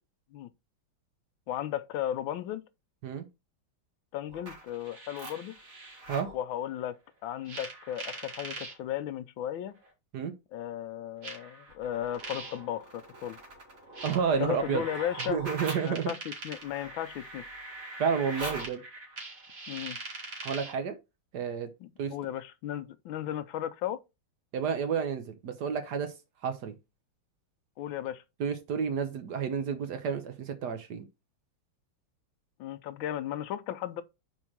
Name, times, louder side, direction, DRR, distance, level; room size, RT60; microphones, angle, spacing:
voice 1, 1.5-2.6 4.1-5.5 6.3-7.0 7.2-9.7 10.5-13.4 14.4-15.4 15.9-16.2 16.4-17.4 19.7-20.0 21.8-24.0 27.8-28.2 32.6-34.0, left 11 dB, 80° left, 1.4 m, -35 dB
sound 1, 4.3-6.3 7.5-8.7 9.8-9.9 11.2-20.8, right 2 dB, 45° right, 2.1 m, -42 dB
voice 2, 14.0-14.8 15.2-16.1 18.0-18.8 20.4-21.0 21.3-21.7 22.0-22.1 24.5-26.1 26.4-26.7 28.4-31.1, right 6 dB, 60° right, 1.3 m, -30 dB
4.6 x 4.4 x 5.9 m
omnidirectional pair, 2.2 m